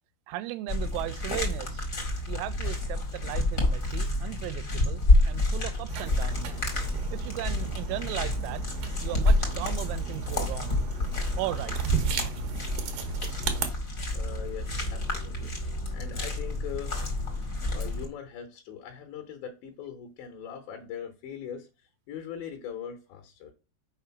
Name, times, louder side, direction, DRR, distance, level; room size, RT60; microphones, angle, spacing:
voice 1, 0.3-1.9 2.3-6.5 7.1-8.6 9.0-10.9 11.4-11.8, right 17 dB, 85° right, 3.1 m, -36 dB
sound 1, 0.7-18.1, left 2 dB, 45° left, 1.0 m, -29 dB
sound 2, 5.9-13.7, right 7 dB, 70° right, 2.1 m, -35 dB
voice 2, 14.1-17.0 17.7-21.7 22.1-23.5, left 8 dB, 75° left, 3.0 m, -41 dB
7.0 x 5.0 x 5.7 m
omnidirectional pair, 5.4 m